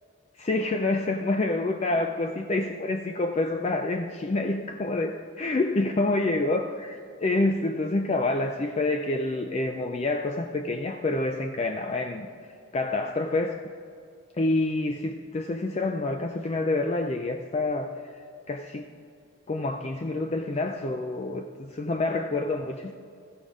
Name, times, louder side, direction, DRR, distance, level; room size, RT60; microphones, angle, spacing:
voice 1, 0.4-12.3 12.7-13.6 14.4-18.1 18.5-18.9 19.5-22.9, left 2 dB, 30° left, 5 dB, 0.4 m, -27 dB
15.5 x 5.2 x 5.0 m, 2.3 s
head